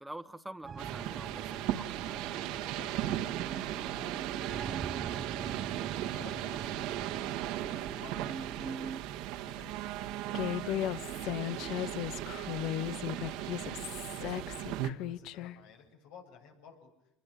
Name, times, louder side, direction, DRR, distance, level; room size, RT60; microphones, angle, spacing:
voice 1, 0.0-2.4, right 1 dB, 5° right, 10 dB, 1.3 m, -46 dB
sound 1, 0.6-9.0, right 6 dB, 30° right, 1.0 m, -43 dB
sound 2, 0.8-14.9, right 13 dB, 75° right, 1.7 m, -37 dB
voice 2, 2.5-5.7 6.1-8.9 9.4-13.9 14.2-16.9, left 6 dB, 80° left, 3 dB, 8.0 m, -55 dB
Human voice, 10.3-15.5, left 13 dB, 65° left, 1.0 m, -36 dB
28.0 x 21.5 x 10.0 m, 0.87 s
supercardioid pair, 110°, 0 cm